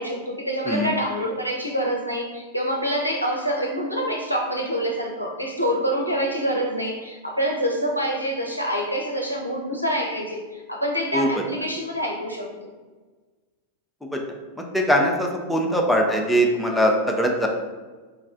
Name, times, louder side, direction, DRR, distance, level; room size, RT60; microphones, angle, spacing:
voice 1, 0.0-12.7, equal, 90° left, 0 dB, 0.5 m, -26 dB
voice 2, 14.6-17.5, equal, ahead, 0 dB, 0.4 m, -21 dB
4.4 x 2.3 x 2.4 m, 1.3 s
figure-of-eight pair, 90°, 0 cm